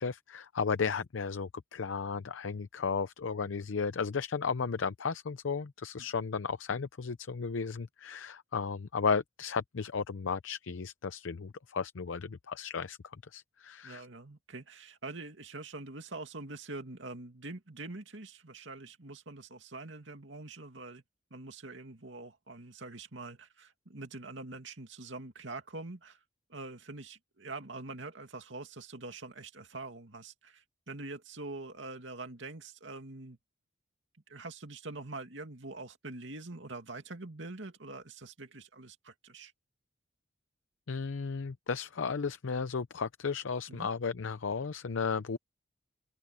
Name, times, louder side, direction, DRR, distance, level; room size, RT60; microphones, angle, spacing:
voice 1, 0.0-13.0 13.3-14.1 40.9-45.4, left 5 dB, 90° left, 0.6 m, -34 dB
voice 2, 13.8-21.0 21.3-26.2 26.5-33.4 34.3-39.5 43.7-43.9, right 2 dB, 70° right, 2.5 m, -44 dB
open air
head